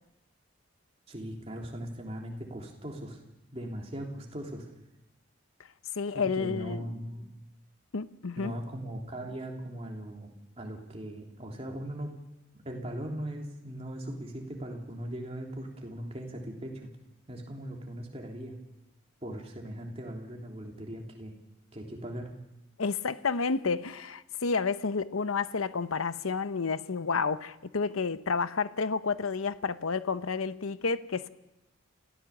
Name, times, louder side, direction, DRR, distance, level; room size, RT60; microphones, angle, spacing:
voice 1, 1.1-3.2 3.5-4.7 6.1-7.2 8.4-12.1 12.6-16.9 17.3-18.5 19.2-21.3 21.7-22.3, right 1 dB, 30° right, 3.3 m, -39 dB
voice 2, 6.0-6.9 7.9-8.5 22.8-31.3, left 4 dB, 90° left, 0.8 m, -30 dB
29.0 x 15.5 x 7.3 m
head